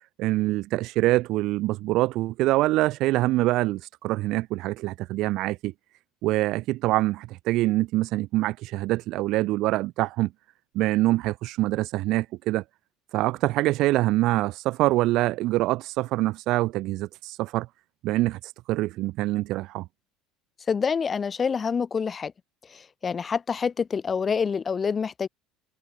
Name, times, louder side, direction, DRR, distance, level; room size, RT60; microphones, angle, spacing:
voice 1, 0.2-5.7 6.2-10.3 10.7-12.6 13.1-17.7 18.0-19.9, right 18 dB, 45° right, 0.5 m, -25 dB
voice 2, 20.7-22.3 22.7-25.3, left 6 dB, 20° left, 0.5 m, -27 dB
cardioid pair, 180°, 0 cm